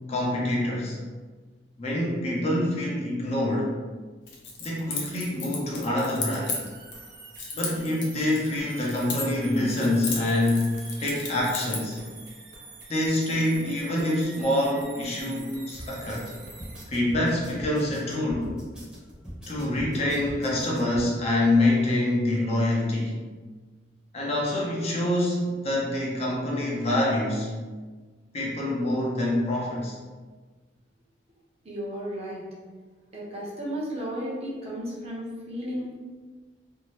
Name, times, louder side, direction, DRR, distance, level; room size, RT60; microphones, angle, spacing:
voice 1, 0.1-1.0 1.8-3.7 4.6-6.6 7.5-12.0 12.9-16.3 16.9-18.5 19.5-23.2 24.1-27.5 28.3-30.0, left 1 dB, 35° left, -4 dB, 0.5 m, -26 dB
Keys jangling, 4.3-7.0 7.4-9.4 9.7-11.9, left 4 dB, 75° left, 0.6 m, -34 dB
sound 1, 6.4-16.8, right 3 dB, 70° right, 0.6 m, -46 dB
sound 2, 15.8-21.1, equal, 5° right, 0.8 m, -42 dB
voice 2, 31.6-32.4 33.1-36.0, equal, 35° right, -5 dB, 0.7 m, -34 dB
2.6 x 2.1 x 3.1 m, 1.4 s
head